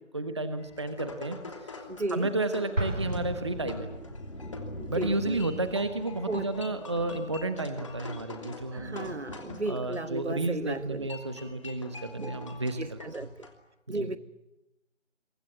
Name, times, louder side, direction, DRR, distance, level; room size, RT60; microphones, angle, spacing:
voice 1, 0.1-1.4 1.6-1.7 2.1-3.9 4.9-9.1 9.7-13.3 13.9-14.1, right 2 dB, 25° right, 1.1 m, -32 dB
sound 1, 0.6-13.5, left 3 dB, 25° left, 3.0 m, -45 dB
sound 2, 1.9-7.1, equal, 85° left, 2.7 m, -45 dB
voice 2, 1.9-2.3 4.8-5.4 6.3-6.5 8.7-11.1 12.2-12.3 12.8-13.5 13.9-14.2, right 2 dB, 65° right, 1.7 m, -34 dB
Explosion, 2.7-4.4, right 1 dB, 85° right, 4.0 m, -33 dB
29.0 x 24.0 x 7.4 m
figure-of-eight pair, 165°, 37 cm